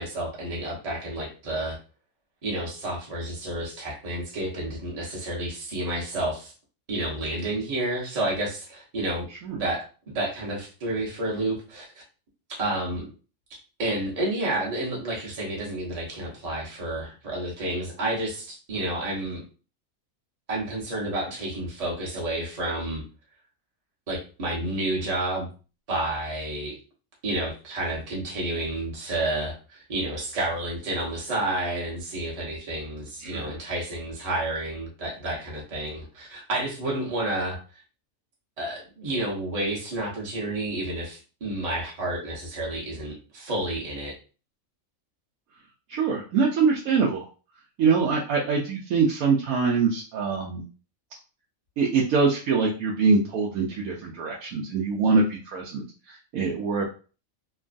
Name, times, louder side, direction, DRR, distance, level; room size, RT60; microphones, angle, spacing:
voice 1, 0.0-1.8 2.4-6.5 6.9-9.3 9.5-11.9 12.5-13.0 13.8-19.4 20.5-23.0 24.1-25.5 25.9-26.8 27.2-37.6 38.6-44.1, right 1 dB, 30° right, -3 dB, 0.9 m, -30 dB
voice 2, 45.9-47.2 47.8-50.6 51.8-56.8, right 4 dB, 80° right, -2 dB, 1.0 m, -24 dB
2.9 x 2.3 x 2.5 m, 0.35 s
omnidirectional pair, 1.5 m